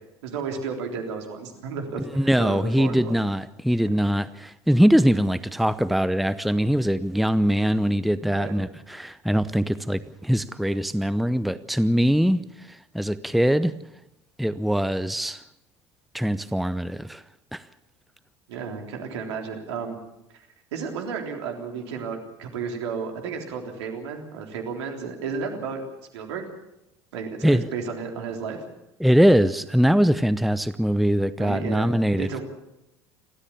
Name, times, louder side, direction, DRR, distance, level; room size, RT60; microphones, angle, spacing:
voice 1, 0.2-3.2 3.8-4.0 8.3-8.5 18.5-20.0 20.3-20.5 20.7-25.8 26.1-26.4 27.1-28.6 31.4-32.4, right 5 dB, 75° right, 3 dB, 3.6 m, -33 dB
voice 2, 2.2-12.4 12.7-13.8 14.4-15.4 16.1-17.2 17.5-17.6 27.4-27.6 29.0-32.4, equal, ahead, 15 dB, 0.8 m, -22 dB
29.5 x 13.5 x 7.2 m, 0.89 s
hypercardioid pair, 70°, 14 cm